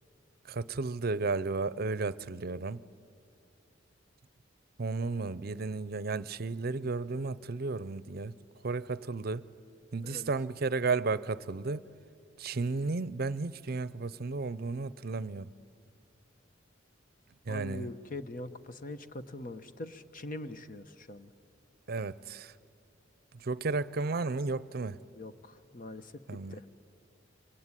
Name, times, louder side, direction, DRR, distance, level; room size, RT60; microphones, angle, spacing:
voice 1, 0.5-2.8 4.8-8.3 8.6-9.5 9.9-11.8 12.4-15.5 17.5-17.9 21.9-22.5 23.3-25.0 26.3-26.5, right 3 dB, 55° right, 18 dB, 0.6 m, -33 dB
voice 2, 17.5-21.3 25.1-26.2 26.5-26.6, left 1 dB, 45° left, 11 dB, 1.0 m, -43 dB
24.5 x 24.0 x 9.8 m, 2.4 s
head